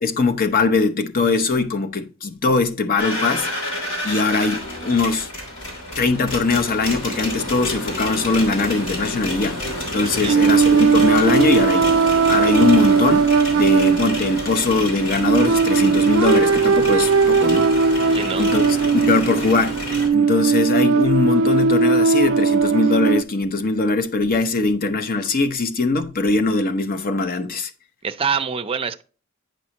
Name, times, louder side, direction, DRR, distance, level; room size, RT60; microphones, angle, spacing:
voice 1, 0.0-3.5 4.0-5.3 6.0-12.0 12.3-18.0 18.4-18.6 18.9-19.8 20.1-27.7, left 3 dB, 45° left, 0.7 m, -21 dB
sound 1, 3.0-20.1, left 1 dB, 80° left, 2.9 m, -29 dB
sound 2, 10.3-23.2, right 5 dB, 85° right, 0.4 m, -18 dB
voice 2, 18.1-18.5 28.0-29.0, right 6 dB, 30° right, 0.5 m, -25 dB
9.1 x 5.4 x 2.9 m
head